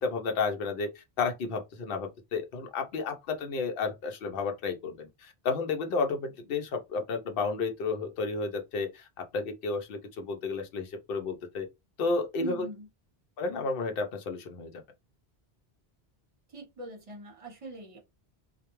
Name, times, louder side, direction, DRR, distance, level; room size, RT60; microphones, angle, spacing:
voice 1, 0.0-11.7 12.0-12.7 13.4-14.7, left 4 dB, 65° left, 0.8 m, -32 dB
voice 2, 12.4-12.9 16.5-18.0, right 2 dB, 35° right, 0.8 m, -41 dB
2.3 x 2.1 x 2.9 m
omnidirectional pair, 1.1 m